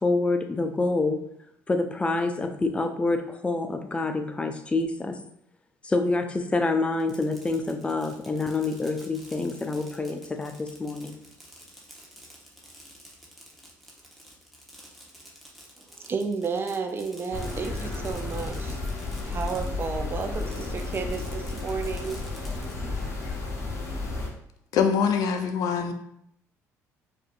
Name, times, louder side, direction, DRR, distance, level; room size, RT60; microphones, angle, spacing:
voice 1, 0.0-1.2 1.7-5.2 5.8-11.2, left 3 dB, 15° left, 6 dB, 0.5 m, -27 dB
Fireworks, 6.9-19.9 20.2-22.7, equal, ahead, 1.1 m, -50 dB
voice 2, 15.9-18.8 19.2-22.2 23.9-24.0, right 5 dB, 35° right, 6 dB, 0.5 m, -32 dB
sound 1, 17.3-24.3, left 2 dB, 45° left, 1.0 m, -32 dB
voice 3, 24.7-25.9, left 6 dB, 70° left, 7 dB, 0.5 m, -23 dB
4.9 x 2.7 x 2.5 m, 0.73 s
supercardioid pair, 80°, 6 cm